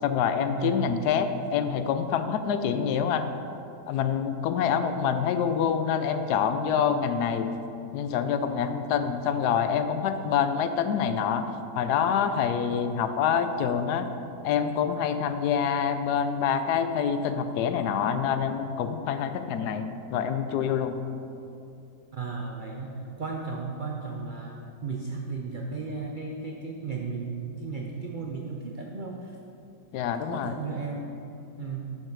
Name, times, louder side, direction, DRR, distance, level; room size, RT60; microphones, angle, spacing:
voice 1, 0.0-3.3 3.9-7.5 7.9-11.4 11.8-14.1 14.4-21.0 29.9-30.6, left 7 dB, 80° left, 9 dB, 1.1 m, -26 dB
voice 2, 22.1-29.4 30.3-31.9, right 4 dB, 70° right, 1 dB, 0.4 m, -35 dB
7.1 x 5.3 x 6.4 m, 2.7 s
omnidirectional pair, 1.7 m